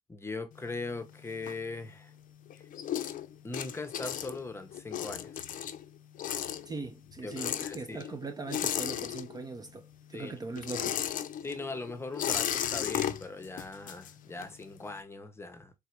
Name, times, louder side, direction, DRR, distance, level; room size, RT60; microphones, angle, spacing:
voice 1, 0.1-2.1 3.4-5.4 7.2-8.0 10.1-10.3 11.4-15.7, left 3 dB, 15° left, 0.8 m, -40 dB
sound 1, 0.5-2.1 2.5-9.7 9.9-14.6, left 10 dB, 50° left, 0.5 m, -35 dB
voice 2, 6.7-11.0, right 3 dB, 25° right, 0.5 m, -40 dB
3.3 x 3.1 x 4.5 m
cardioid pair, 110°, 17 cm